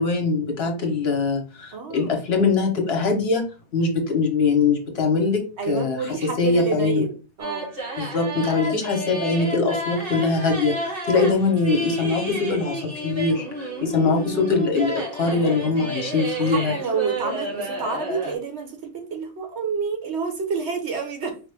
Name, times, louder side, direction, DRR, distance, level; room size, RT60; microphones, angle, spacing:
voice 1, 0.0-3.4 3.7-7.1 8.0-16.7, left 4 dB, 65° left, 1.2 m, -22 dB
voice 2, 1.7-2.2 5.6-7.7 15.3-15.9 16.4-21.4, right 5 dB, 70° right, 1.2 m, -29 dB
Carnatic varnam by Ramakrishnamurthy in Abhogi raaga, 7.4-18.3, right 1 dB, 55° right, 1.6 m, -31 dB
4.8 x 2.5 x 3.4 m
omnidirectional pair, 1.2 m